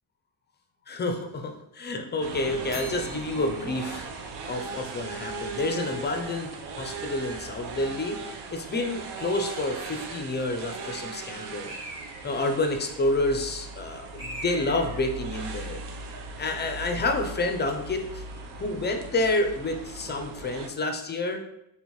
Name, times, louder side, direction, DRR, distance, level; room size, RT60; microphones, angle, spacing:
voice 1, 0.9-4.1 4.5-8.2 8.5-11.7 12.2-15.8 16.4-18.2 18.6-21.4, left 2 dB, 25° left, 4 dB, 0.4 m, -29 dB
sound 1, 2.2-20.7, right 3 dB, 75° right, 0.7 m, -38 dB
Bell, 2.7-5.0, left 1 dB, 10° right, 1.3 m, -45 dB
Bird, 11.7-12.5 14.2-15.1, right 1 dB, 35° right, 1.5 m, -40 dB
4.5 x 3.5 x 2.9 m, 0.82 s
cardioid pair, 160°, 41 cm